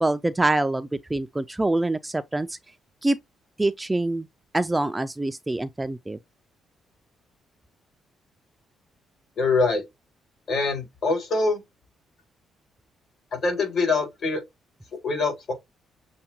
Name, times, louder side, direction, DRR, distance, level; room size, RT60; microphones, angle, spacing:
voice 1, 0.0-2.6 3.0-3.2 3.6-4.3 4.5-6.2, right 2 dB, 15° right, 0.3 m, -25 dB
voice 2, 9.4-9.8 10.5-11.6 13.4-14.4 15.0-15.5, left 3 dB, 55° left, 3.2 m, -24 dB
6.8 x 2.3 x 2.9 m
cardioid pair, 90°, 0 cm